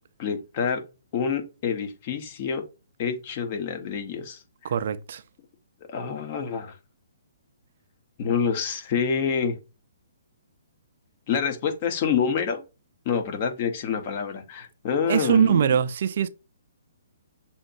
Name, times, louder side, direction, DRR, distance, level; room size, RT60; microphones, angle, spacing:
voice 1, 0.2-0.8 1.1-2.6 3.0-4.4 5.9-6.8 8.2-9.6 11.3-12.6 13.0-15.8, left 6 dB, 40° left, 1.2 m, -27 dB
voice 2, 4.6-5.2 15.1-16.3, right 8 dB, 60° right, 0.4 m, -22 dB
6.3 x 3.0 x 2.6 m
hypercardioid pair, 140°, 0 cm